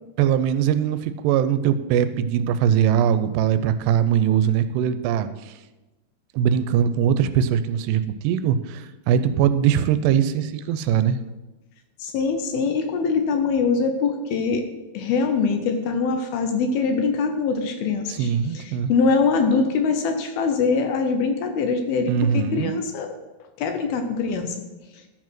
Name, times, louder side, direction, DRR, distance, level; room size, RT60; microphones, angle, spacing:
voice 1, 0.2-5.5 6.3-11.2 18.1-18.9 22.1-22.7, right 9 dB, 90° right, 11 dB, 2.7 m, -21 dB
voice 2, 12.0-14.6 14.9-18.3 18.5-23.1 23.6-24.6, left 4 dB, 75° left, 6 dB, 2.4 m, -23 dB
12.0 x 4.7 x 6.0 m, 1.1 s
omnidirectional pair, 4.8 m